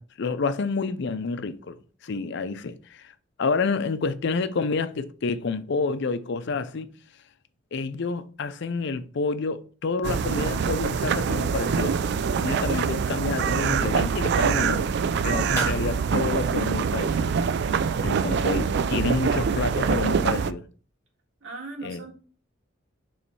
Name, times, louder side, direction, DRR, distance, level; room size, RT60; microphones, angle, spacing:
voice 1, 0.0-3.1 3.4-6.9 7.7-12.0 12.4-14.9 15.2-17.4 18.0-20.7 21.8-22.0, left 4 dB, 60° left, 0.5 m, -29 dB
sound 1, 10.0-20.5, right 6 dB, 60° right, 0.3 m, -24 dB
sound 2, 15.4-17.9, equal, 15° left, 1.5 m, -44 dB
voice 2, 21.4-22.1, right 3 dB, 80° right, 1.8 m, -38 dB
6.8 x 3.2 x 4.5 m
head